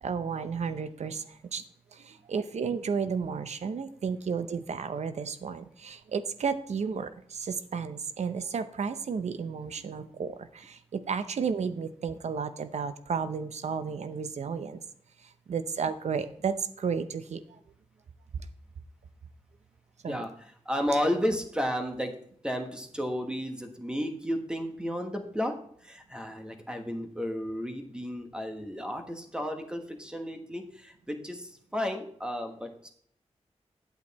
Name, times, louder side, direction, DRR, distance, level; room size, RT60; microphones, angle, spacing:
voice 1, 0.0-1.6 1.9-14.8 15.5-17.6 20.0-20.2, right 6 dB, 75° right, 11 dB, 0.7 m, -33 dB
voice 2, 20.1-22.1 22.4-25.5 25.8-32.9, equal, 5° right, 5 dB, 1.3 m, -33 dB
8.9 x 8.1 x 4.2 m, 0.63 s
wide cardioid pair, 105°, 11 cm